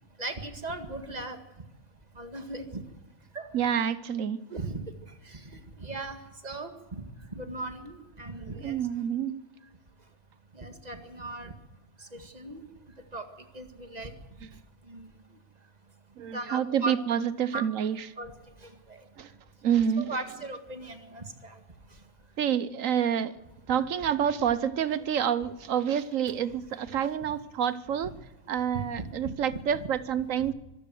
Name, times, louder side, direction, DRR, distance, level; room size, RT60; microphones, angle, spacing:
voice 1, 0.2-1.4 2.1-2.8 3.3-3.5 4.5-8.8 10.5-11.5 12.0-12.7 13.1-14.1 14.8-15.2 16.3-16.9 17.5-17.7 18.2-19.1 20.0-21.6 21.9-22.0 28.7-29.3 30.4-30.5, right 2 dB, 30° right, 7 dB, 2.1 m, -38 dB
voice 2, 3.5-4.4 8.4-9.4 16.2-18.0 19.2-19.3 19.6-20.1 22.4-23.3 23.7-28.1 28.5-30.5, right 8 dB, 65° right, 16 dB, 1.2 m, -28 dB
25.0 x 14.0 x 7.7 m, 1.1 s
omnidirectional pair, 1.5 m